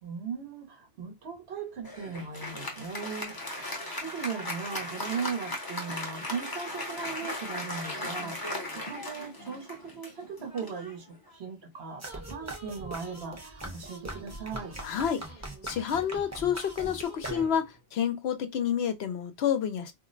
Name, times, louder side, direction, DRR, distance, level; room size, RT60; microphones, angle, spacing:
voice 1, 0.0-14.8, right 6 dB, 75° right, 1.1 m, -38 dB
Applause, 1.8-11.6, left 1 dB, 25° left, 0.7 m, -37 dB
sound 1, 12.0-17.8, right 1 dB, 15° right, 0.7 m, -41 dB
voice 2, 14.8-15.3 15.6-19.9, left 8 dB, 80° left, 0.9 m, -29 dB
2.6 x 2.0 x 3.8 m
omnidirectional pair, 1.1 m